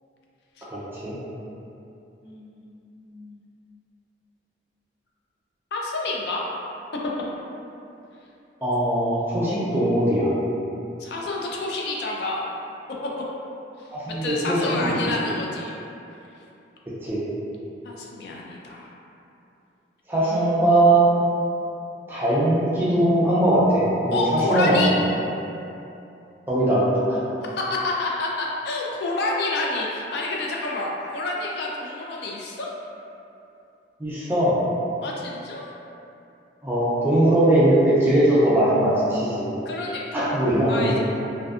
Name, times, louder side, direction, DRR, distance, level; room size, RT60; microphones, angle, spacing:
voice 1, 0.7-1.2 8.6-10.3 13.9-15.1 17.0-17.2 20.1-21.0 22.1-24.9 26.5-27.2 34.0-34.5 36.6-39.5 40.1-41.0, right 1 dB, 10° right, -9 dB, 0.4 m, -20 dB
voice 2, 2.2-3.4 5.7-6.4 11.0-12.5 13.0-13.1 13.8-15.7 17.8-18.9 20.2-20.8 24.1-24.9 27.6-32.7 35.0-35.7 39.7-40.4 40.7-41.0, left 2 dB, 60° left, -3 dB, 0.3 m, -29 dB
2.5 x 2.2 x 2.3 m, 2.8 s
head